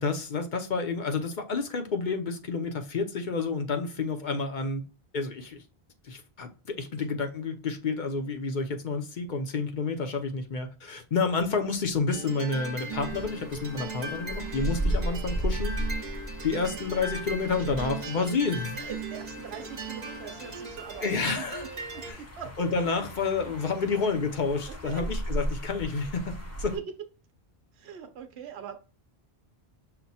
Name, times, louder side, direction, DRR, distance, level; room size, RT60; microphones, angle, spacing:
voice 1, 0.0-4.8 5.1-5.6 6.1-15.8 16.4-18.8 21.0-21.6 22.1-22.2 22.6-26.7, left 4 dB, 55° left, 0.8 m, -29 dB
sound 1, 12.1-22.1, right 3 dB, 45° right, 1.0 m, -38 dB
sound 2, 12.9-26.8, right 1 dB, 20° left, 0.6 m, -36 dB
voice 2, 17.6-18.2 18.7-22.5 23.0-23.9 24.7-25.1 26.7-26.8 27.7-28.8, right 8 dB, 85° right, 0.9 m, -43 dB
5.9 x 2.2 x 4.1 m
omnidirectional pair, 1.0 m